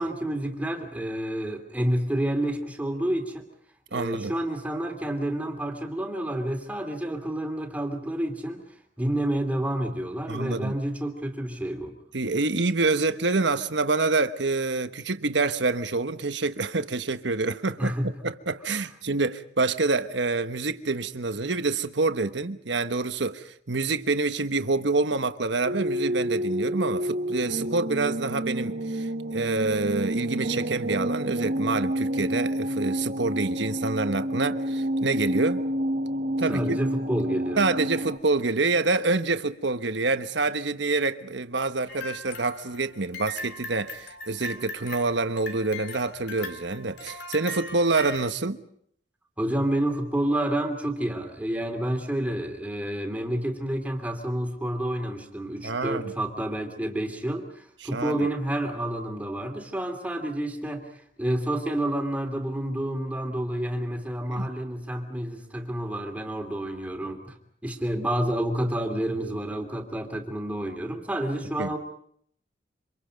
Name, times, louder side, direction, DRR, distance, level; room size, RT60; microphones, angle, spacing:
voice 1, 0.0-3.4 3.9-8.6 9.0-12.0 17.8-18.1 36.5-37.6 49.4-60.9 61.2-67.4 67.6-71.8, right 1 dB, 10° right, 2.8 m, -29 dB
voice 2, 3.9-4.3 10.3-10.8 12.1-35.6 36.4-36.8 37.6-48.6 55.6-56.1 57.8-58.3 64.3-64.5 71.6-71.7, right 3 dB, 75° right, 1.2 m, -27 dB
sound 1, 25.6-38.2, right 1 dB, 55° right, 1.7 m, -29 dB
sound 2, 41.9-48.3, left 2 dB, 65° left, 3.0 m, -39 dB
27.5 x 25.5 x 5.3 m
head